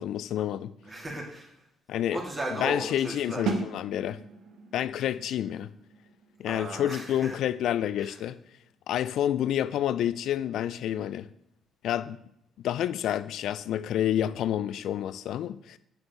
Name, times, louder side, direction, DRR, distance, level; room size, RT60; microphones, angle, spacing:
voice 1, 0.0-0.7 1.9-2.2 2.6-4.2 4.7-5.7 6.4-8.4 8.9-11.3 11.8-12.2 12.6-15.8, left 11 dB, 65° left, 0.3 m, -29 dB
voice 2, 0.8-1.5 2.1-3.4 6.5-7.3 8.0-8.1, right 1 dB, 30° right, 2.8 m, -36 dB
sound 1, 3.5-9.2, right 4 dB, 65° right, 1.2 m, -38 dB
8.8 x 7.1 x 3.2 m
figure-of-eight pair, 45°, 0 cm